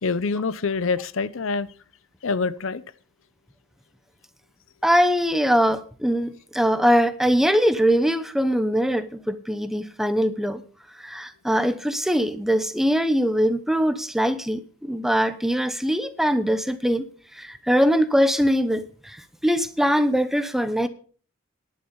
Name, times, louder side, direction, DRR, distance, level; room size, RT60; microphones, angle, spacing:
voice 1, 0.0-1.7 2.2-2.8, left 4 dB, 75° left, 0.7 m, -25 dB
voice 2, 4.8-10.6 11.0-17.0 17.3-20.9, equal, ahead, 0.9 m, -22 dB
11.0 x 9.2 x 6.9 m
head